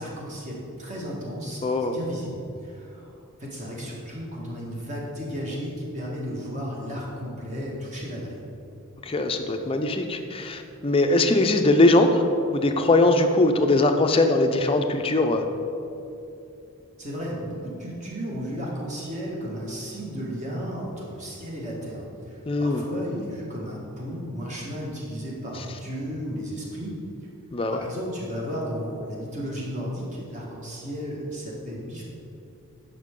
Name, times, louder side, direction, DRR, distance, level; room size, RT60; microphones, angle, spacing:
voice 1, 0.0-3.1 3.4-8.4 17.0-27.0 27.7-32.0, equal, 35° right, -4 dB, 1.6 m, -34 dB
voice 2, 1.6-1.9 9.1-12.2 12.5-15.4 22.5-22.8 27.5-27.8, left 2 dB, 25° left, 5 dB, 0.5 m, -21 dB
10.5 x 5.6 x 3.7 m, 2.7 s
head